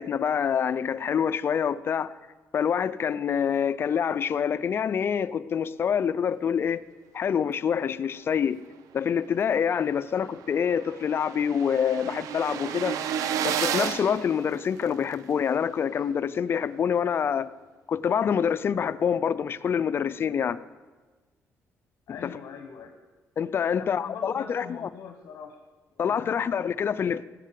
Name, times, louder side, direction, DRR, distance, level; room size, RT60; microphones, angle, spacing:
voice 1, 0.0-2.1 2.5-6.8 7.1-8.6 8.9-13.0 13.4-17.5 17.9-20.6 22.2-22.4 23.4-24.8 26.0-27.2, left 7 dB, 45° left, 0.5 m, -26 dB
sound 1, 9.6-9.7 10.0-10.1 10.3-15.1, right 9 dB, 85° right, 0.9 m, -32 dB
voice 2, 22.1-23.0 23.7-25.6 26.0-26.5, left 6 dB, 70° left, 1.3 m, -42 dB
18.5 x 7.4 x 7.6 m
cardioid pair, 120°, 6 cm